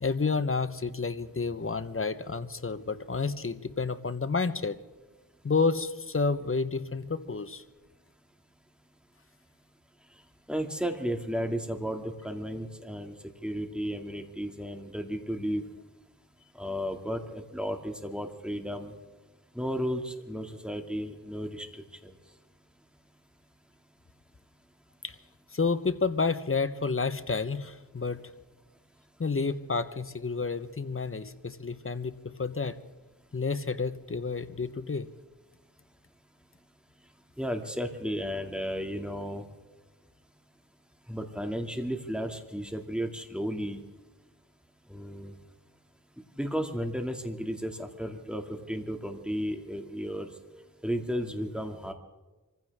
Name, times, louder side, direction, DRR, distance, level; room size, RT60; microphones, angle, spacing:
voice 1, 0.0-4.8 5.4-7.6 25.0-25.2 25.5-28.2 29.2-32.8 33.3-35.1, left 4 dB, 35° left, 12 dB, 1.1 m, -30 dB
voice 2, 10.5-13.1 13.4-15.6 16.6-18.9 19.5-22.1 37.4-39.4 41.1-43.8 44.9-45.3 46.4-50.3 50.8-51.9, equal, ahead, 4 dB, 2.4 m, -33 dB
26.0 x 15.5 x 3.6 m, 1.2 s
cardioid pair, 45°, 37 cm